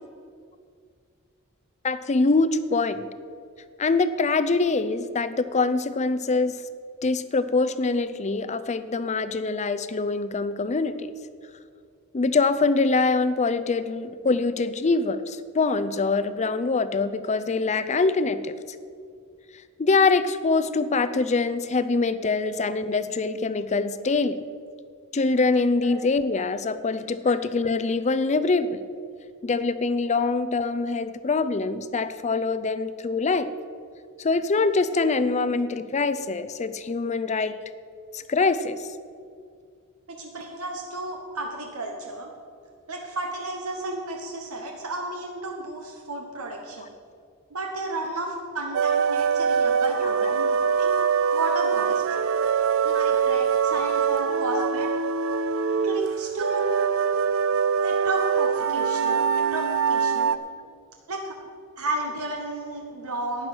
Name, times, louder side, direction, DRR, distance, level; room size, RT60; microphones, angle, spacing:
voice 1, 1.8-3.1 3.8-6.5 7.0-11.1 12.1-18.5 19.8-24.5 25.1-28.8 29.4-33.5 34.2-37.6 38.1-38.9, left 3 dB, 30° left, 13 dB, 0.5 m, -24 dB
voice 2, 40.2-42.3 42.9-46.9 47.5-50.9 51.3-52.0 52.8-54.9 55.8-56.6 57.8-60.4 61.1-61.3 61.8-63.5, right 2 dB, 85° right, 1 dB, 1.2 m, -33 dB
sound 1, 48.7-60.4, right 6 dB, 65° right, 0.4 m, -23 dB
11.5 x 9.3 x 6.1 m, 2.2 s
head